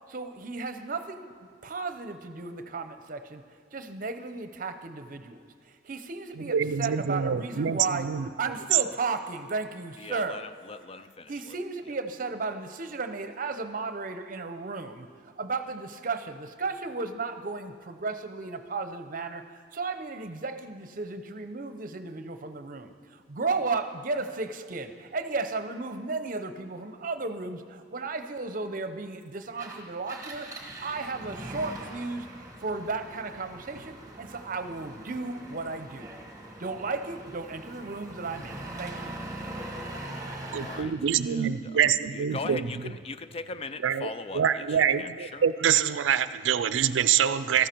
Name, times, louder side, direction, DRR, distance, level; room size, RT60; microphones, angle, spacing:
voice 1, 0.1-1.4 1.6-3.4 3.7-5.4 5.8-8.1 8.4-10.4 11.3-15.1 15.4-32.3 32.6-36.1 36.6-39.1, right 3 dB, 45° right, 0.7 m, -34 dB
voice 2, 6.4-8.3 40.5-42.7 43.8-44.1 44.3-47.7, right 8 dB, 90° right, 0.4 m, -25 dB
voice 3, 10.0-11.6 40.6-40.9 41.2-45.4, left 4 dB, 30° left, 0.4 m, -40 dB
Engine, 29.5-40.9, right 1 dB, 20° right, 1.4 m, -41 dB
13.5 x 13.5 x 4.5 m
head